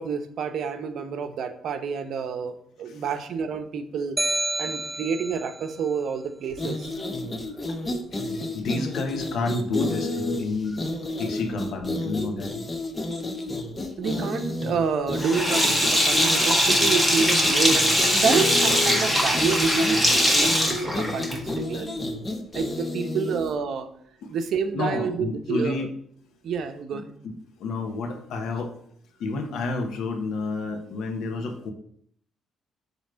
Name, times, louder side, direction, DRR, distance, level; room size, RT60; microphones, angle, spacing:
voice 1, 0.0-4.2 4.6-6.9 14.0-22.0 22.5-23.9 24.3-25.9 26.4-27.1, right 5 dB, 70° right, 8 dB, 0.8 m, -28 dB
sound 1, 4.2-5.5, right 2 dB, 15° right, 0.4 m, -28 dB
sound 2, 6.5-23.6, left 2 dB, 25° left, 1.1 m, -31 dB
voice 2, 8.1-10.8 11.2-12.5 23.0-23.1 24.2-24.3 24.7-25.9 26.9-27.3 27.6-28.7 29.2-31.7, left 3 dB, 75° left, 4 dB, 1.3 m, -30 dB
Sink (filling or washing), 15.2-21.6, equal, 5° left, 1.6 m, -21 dB
7.1 x 3.2 x 6.1 m, 0.64 s
cardioid pair, 90°, 0 cm